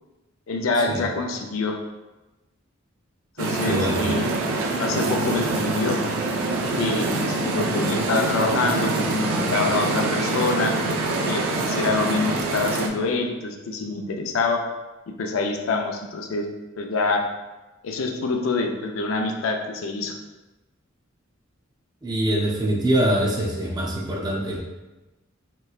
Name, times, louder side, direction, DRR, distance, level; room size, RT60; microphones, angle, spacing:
voice 1, 0.5-1.8 3.4-4.3 4.8-6.0 6.8-10.8 11.2-14.6 15.2-16.5 16.8-17.3 17.8-20.2, left 3 dB, 80° left, 2 dB, 0.4 m, -26 dB
sound 1, 3.4-12.9, right 2 dB, 85° right, 0.4 m, -25 dB
voice 2, 3.6-4.0 22.0-24.6, right 1 dB, 20° right, -2 dB, 0.5 m, -24 dB
3.2 x 3.0 x 2.3 m, 1.1 s
head